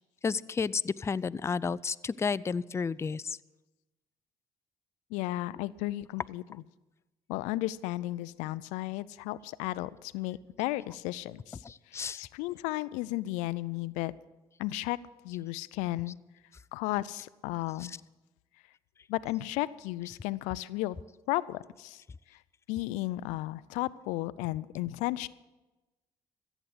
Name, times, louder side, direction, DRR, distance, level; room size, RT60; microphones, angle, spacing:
voice 1, 0.2-3.4 10.9-11.0 11.6-12.2 17.8-18.0, left 5 dB, 20° left, 17 dB, 0.4 m, -32 dB
voice 2, 5.1-6.6 7.3-11.6 12.1-14.1 14.6-15.0 15.2-16.2 16.7-17.9 19.1-21.0 21.3-22.0 22.7-25.3, left 17 dB, 90° left, 18 dB, 0.4 m, -34 dB
14.5 x 8.2 x 7.9 m, 1.1 s
supercardioid pair, 70°, 12 cm